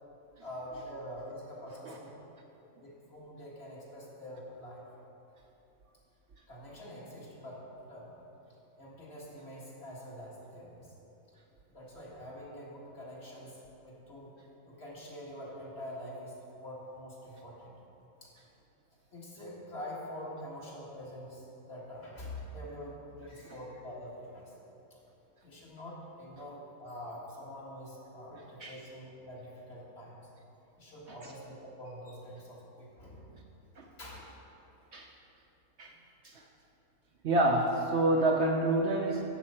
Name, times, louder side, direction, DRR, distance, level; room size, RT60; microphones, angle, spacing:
voice 1, 0.4-2.1 2.8-4.8 6.5-8.2 8.8-11.0 11.7-14.4 14.6-17.8 18.2-18.3 19.1-24.5 24.9-25.0 25.4-30.2 30.8-33.4 34.0-34.3, equal, 45° left, -5 dB, 2.1 m, -45 dB
voice 2, 37.2-39.2, right 2 dB, 60° right, 2 dB, 0.8 m, -27 dB
11.0 x 7.1 x 4.3 m, 2.9 s
omnidirectional pair, 1.5 m